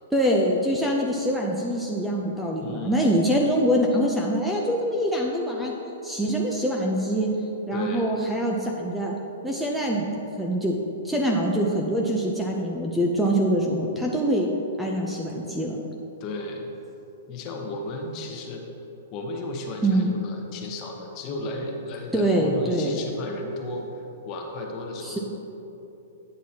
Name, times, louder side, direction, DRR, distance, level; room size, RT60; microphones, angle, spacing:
voice 1, 0.1-5.7 6.0-7.3 7.7-9.1 9.4-10.1 10.4-10.8 11.0-14.5 14.8-15.8 19.8-20.1 22.1-23.0 25.0-25.2, equal, 5° right, -1 dB, 0.5 m, -24 dB
voice 2, 2.6-3.1 7.7-8.1 16.2-16.7 17.3-18.7 19.1-23.9 24.2-25.2, left 2 dB, 35° left, 2 dB, 0.9 m, -34 dB
9.3 x 6.0 x 2.8 m, 3.0 s
hypercardioid pair, 145°, 0 cm